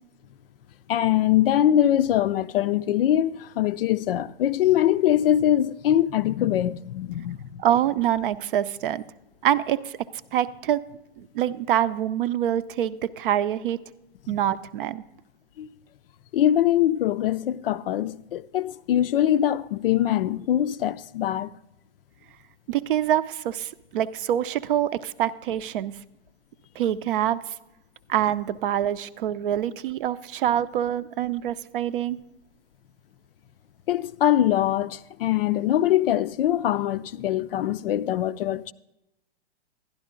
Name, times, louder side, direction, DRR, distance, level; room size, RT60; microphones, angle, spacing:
voice 1, 0.9-7.6 15.6-15.7 16.3-21.5 33.9-38.7, left 11 dB, 60° left, 0.5 m, -23 dB
voice 2, 7.6-9.0 9.4-10.0 10.3-10.8 11.2-13.8 14.3-15.0 22.7-26.0 26.8-27.4 28.1-32.2, right 11 dB, 55° right, 0.6 m, -25 dB
12.0 x 11.0 x 3.7 m
hypercardioid pair, 120°, 32 cm